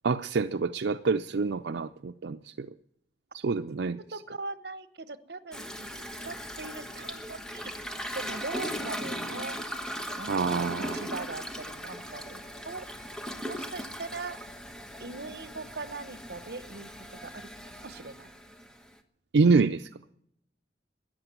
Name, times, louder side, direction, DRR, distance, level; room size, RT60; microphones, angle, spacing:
voice 1, 0.0-2.7 3.4-4.0 10.3-11.0 19.3-19.9, right 4 dB, 80° right, 0.5 m, -26 dB
voice 2, 4.1-5.9 6.2-7.7 8.1-9.6 10.2-12.9 13.4-14.4 15.0-17.5 17.8-18.3, right 3 dB, 65° right, 1.0 m, -41 dB
Toilet flush, 5.5-18.9, equal, 5° left, 1.2 m, -38 dB
14.0 x 10.5 x 9.3 m
head